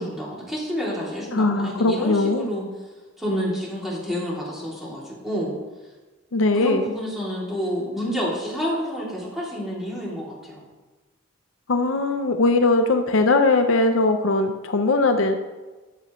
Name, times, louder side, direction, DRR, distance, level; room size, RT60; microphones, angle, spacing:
voice 1, 0.0-2.6 3.2-5.5 6.5-10.6, equal, ahead, -6 dB, 2.7 m, -29 dB
voice 2, 1.3-2.5 6.3-6.8 11.7-15.4, left 2 dB, 70° left, 6 dB, 0.6 m, -20 dB
13.0 x 6.9 x 3.1 m, 1.2 s
head